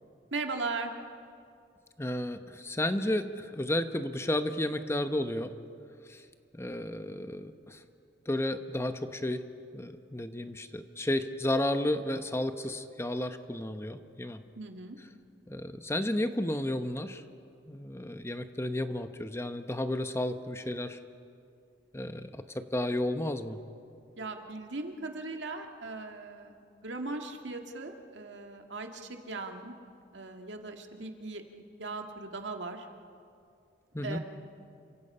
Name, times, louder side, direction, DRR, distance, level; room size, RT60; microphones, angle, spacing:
voice 1, 0.3-0.9 14.6-15.0 24.2-26.6 26.8-29.7 30.1-31.4 31.8-32.9 34.0-34.2, right 3 dB, 85° right, 4 dB, 2.0 m, -38 dB
voice 2, 2.0-5.5 6.1-6.3 6.5-7.8 8.3-9.4 9.7-14.4 15.5-17.2 17.7-21.0 21.9-23.6 33.9-34.2, left 1 dB, 15° left, 9 dB, 0.8 m, -32 dB
29.5 x 25.0 x 5.6 m, 2.4 s
head